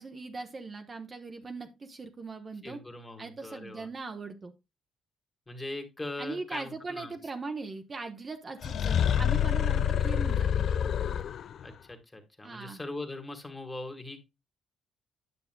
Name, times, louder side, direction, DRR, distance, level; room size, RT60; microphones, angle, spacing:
voice 1, 0.0-2.8 3.2-4.5 6.2-10.7 12.4-12.8, right 3 dB, 35° right, 5 dB, 0.9 m, -40 dB
voice 2, 2.6-3.9 5.5-7.1 11.6-14.2, left 2 dB, 15° left, 5 dB, 1.7 m, -40 dB
sound 1, 8.6-11.6, left 9 dB, 60° left, 0.3 m, -27 dB
9.5 x 6.8 x 2.2 m, 0.25 s
cardioid pair, 90°, 0 cm